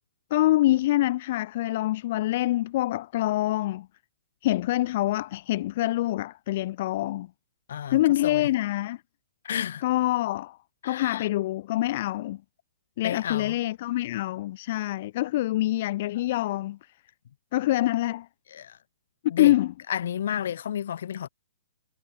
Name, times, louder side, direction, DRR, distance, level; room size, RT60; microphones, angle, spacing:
voice 1, 0.3-3.9 4.4-7.3 7.9-9.0 9.8-10.6 10.8-12.4 13.0-16.8 17.5-18.3 19.4-19.7, left 15 dB, 50° left, 1.8 m, -25 dB
voice 2, 7.7-8.5 9.4-9.8 10.8-11.3 13.0-13.5 18.5-18.8 19.3-19.5 19.9-21.3, left 9 dB, 65° left, 2.9 m, -31 dB
hypercardioid pair, 140°, 0 cm